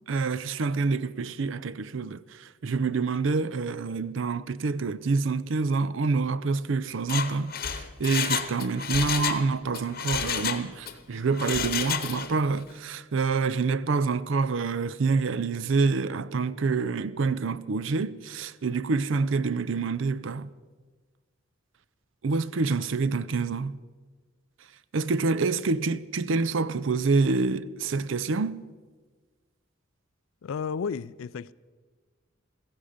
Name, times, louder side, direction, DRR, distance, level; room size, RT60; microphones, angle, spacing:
voice 1, 0.1-20.5 22.2-23.8 24.9-28.6, right 4 dB, 65° right, 0.5 m, -27 dB
Mechanisms, 7.0-9.4 9.7-11.0 11.3-12.4 12.7-12.8, left 8 dB, 45° left, 1.0 m, -30 dB
voice 2, 30.4-31.5, left 6 dB, 75° left, 0.4 m, -32 dB
16.0 x 15.5 x 5.0 m
head